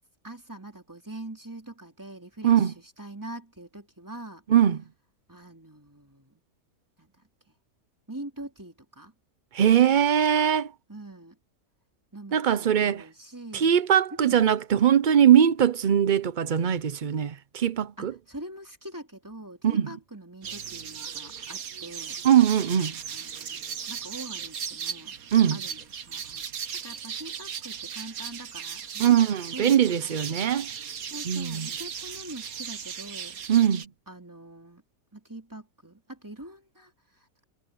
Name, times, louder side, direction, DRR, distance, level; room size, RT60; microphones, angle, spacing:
voice 1, 0.2-4.4 5.3-6.4 7.0-7.5 8.1-9.1 10.9-11.4 12.1-13.7 14.1-14.5 18.0-22.3 22.8-25.1 25.5-29.1 29.5-30.2 31.1-33.4 34.1-34.8 35.1-37.4, right 1 dB, 10° right, 3.2 m, -43 dB
voice 2, 9.5-10.7 12.3-13.0 13.5-18.1 19.6-19.9 22.2-22.9 25.3-25.6 29.0-30.7 31.3-31.7 33.5-33.8, right 9 dB, 85° right, 0.4 m, -21 dB
sound 1, 20.4-33.9, right 7 dB, 60° right, 1.5 m, -37 dB
omnidirectional pair, 1.7 m